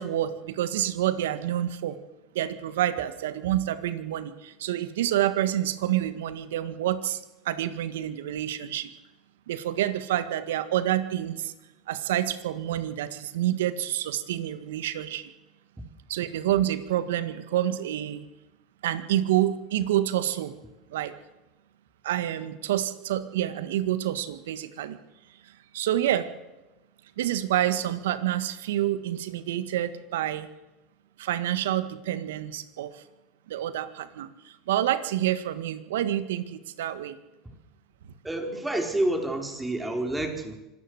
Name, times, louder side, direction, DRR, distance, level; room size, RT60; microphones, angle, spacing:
voice 1, 0.0-2.0 2.4-8.9 9.5-11.5 11.9-15.3 16.1-18.3 18.8-20.5 20.9-21.1 22.0-25.0 25.7-26.3 27.2-30.5 31.2-33.0 33.5-37.2, right 12 dB, 80° right, 13 dB, 1.7 m, -28 dB
voice 2, 38.2-40.5, right 1 dB, 10° right, 4 dB, 4.6 m, -28 dB
25.5 x 13.0 x 8.2 m, 1.0 s
hypercardioid pair, 80°, 0 cm